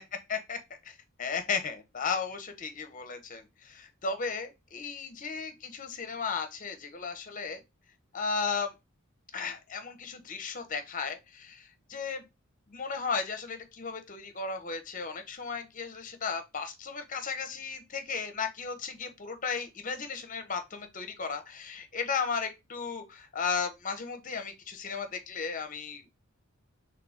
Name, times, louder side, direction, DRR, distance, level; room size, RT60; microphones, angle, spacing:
voice 1, 0.8-7.6 8.1-8.7 9.3-12.2 12.7-26.1, left 5 dB, 40° left, 0.8 m, -35 dB
3.8 x 3.4 x 3.5 m
head